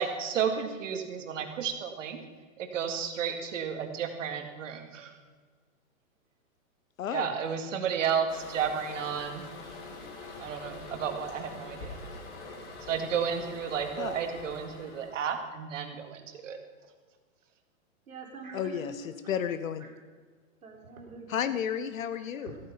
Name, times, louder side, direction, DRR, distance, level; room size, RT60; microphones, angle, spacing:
voice 1, 0.0-2.2 2.6-5.1 7.1-9.5 10.4-12.0 12.9-16.6, right 7 dB, 65° right, 6 dB, 2.1 m, -32 dB
voice 2, 7.0-7.4 14.0-14.2 18.5-18.9 19.3-19.8 21.3-22.5, left 9 dB, 75° left, 12 dB, 0.8 m, -32 dB
Toilet flush, 8.3-15.4, left 3 dB, 55° left, 3.8 m, -44 dB
voice 3, 18.1-19.3 19.8-19.9 20.6-21.4 21.7-21.8 22.4-22.6, right 3 dB, 85° right, 1 dB, 3.6 m, -45 dB
14.5 x 9.1 x 5.6 m, 1.5 s
hypercardioid pair, 150°, 41 cm